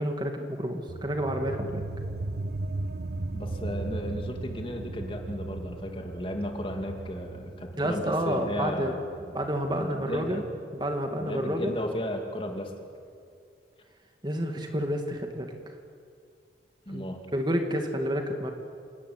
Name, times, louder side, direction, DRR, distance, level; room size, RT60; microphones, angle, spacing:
voice 1, 0.0-1.8 7.8-8.9 9.3-10.4 10.7-11.7 14.2-15.5 16.9-17.0 17.3-18.5, equal, 25° right, 4 dB, 2.1 m, -29 dB
sound 1, 0.9-12.0, right 2 dB, 70° right, 0.8 m, -37 dB
voice 2, 3.3-9.3 9.8-10.4 11.2-12.7 16.9-17.2, equal, 30° left, 3 dB, 2.7 m, -35 dB
28.5 x 18.0 x 9.7 m, 2.4 s
head